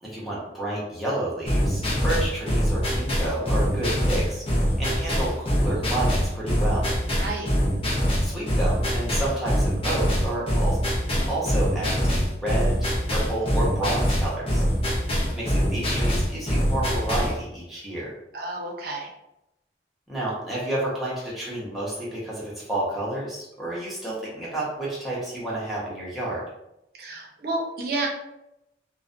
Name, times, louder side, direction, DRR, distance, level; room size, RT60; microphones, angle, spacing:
voice 1, 0.0-4.5 4.8-6.9 8.2-10.8 11.1-14.6 15.3-18.1 20.1-26.5, right 1 dB, ahead, -8 dB, 0.7 m, -30 dB
sound 1, 1.5-17.4, equal, 30° left, 0.6 m, -24 dB
voice 2, 7.2-7.5 18.3-19.1 27.0-28.1, right 2 dB, 55° right, -1 dB, 0.5 m, -30 dB
2.4 x 2.1 x 2.5 m, 0.88 s
head